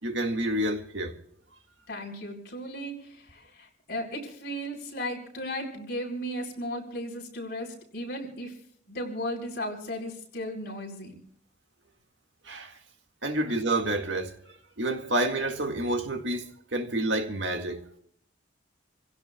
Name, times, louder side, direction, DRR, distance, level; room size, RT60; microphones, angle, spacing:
voice 1, 0.0-1.2 12.5-12.8 13.2-17.8, right 1 dB, 75° right, 2.0 m, -29 dB
voice 2, 1.9-8.6 8.9-11.2, equal, 55° left, 4.8 m, -35 dB
29.0 x 16.5 x 2.3 m
head